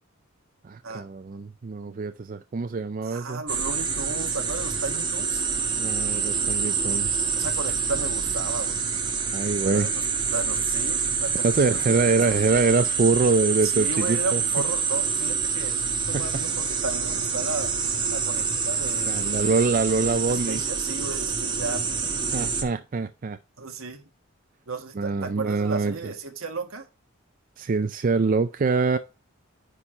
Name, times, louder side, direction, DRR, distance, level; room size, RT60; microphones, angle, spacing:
voice 1, 0.6-3.4 5.8-7.3 9.3-9.9 11.4-14.4 16.1-16.2 19.1-20.6 22.3-23.4 25.0-25.9 27.6-29.0, right 4 dB, 40° right, 0.4 m, -24 dB
voice 2, 3.0-5.4 7.4-8.8 9.7-10.0 10.3-12.4 13.6-17.7 18.1-19.6 20.3-21.9 23.6-24.0 24.7-26.9, right 3 dB, 75° right, 1.5 m, -34 dB
sound 1, 3.5-22.6, right 5 dB, 20° right, 1.2 m, -27 dB
10.0 x 4.4 x 4.8 m
head